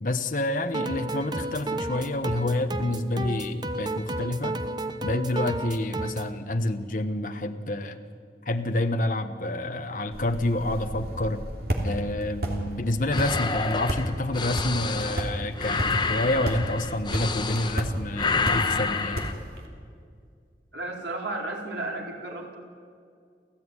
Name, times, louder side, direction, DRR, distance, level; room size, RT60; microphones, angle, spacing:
voice 1, 0.0-4.6 5.0-8.0 8.4-11.4 11.8-19.2, left 1 dB, 50° left, 6 dB, 1.3 m, -28 dB
sound 1, 0.7-6.3, right 2 dB, 25° right, 0.9 m, -32 dB
sound 2, 10.1-19.7, right 1 dB, 60° right, 3.0 m, -33 dB
sound 3, 13.1-17.9 18.1-19.3, left 4 dB, 25° left, 1.2 m, -29 dB
voice 2, 20.7-22.6, right 2 dB, 90° right, 0 dB, 4.4 m, -33 dB
28.5 x 14.5 x 9.9 m, 2.2 s
head